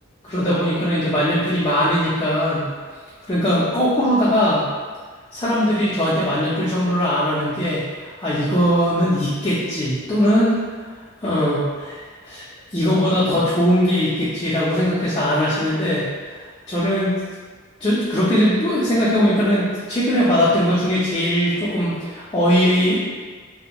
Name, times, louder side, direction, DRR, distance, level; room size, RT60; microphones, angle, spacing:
voice 1, 0.2-2.7 3.3-4.6 5.3-10.6 11.2-16.1 16.7-17.2 17.8-23.0, equal, 20° left, -9 dB, 0.3 m, -20 dB
2.5 x 2.0 x 2.9 m, 1.5 s
head